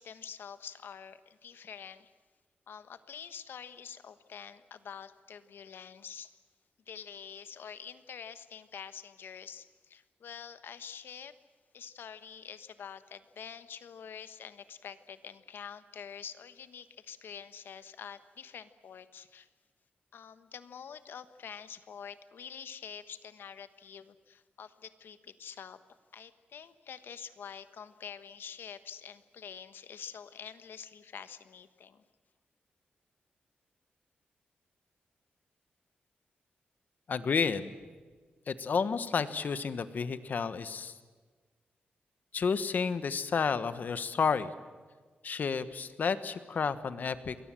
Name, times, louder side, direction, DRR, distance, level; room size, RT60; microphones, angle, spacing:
voice 1, 0.0-2.1 2.7-6.3 6.9-11.3 11.7-19.5 20.1-25.8 26.1-32.0, left 7 dB, 80° left, 12 dB, 1.3 m, -46 dB
voice 2, 37.1-37.7 38.5-40.9 42.3-44.5 45.2-47.4, left 5 dB, 55° left, 12 dB, 1.3 m, -31 dB
28.0 x 22.0 x 7.7 m, 1.4 s
wide cardioid pair, 155°, 4 cm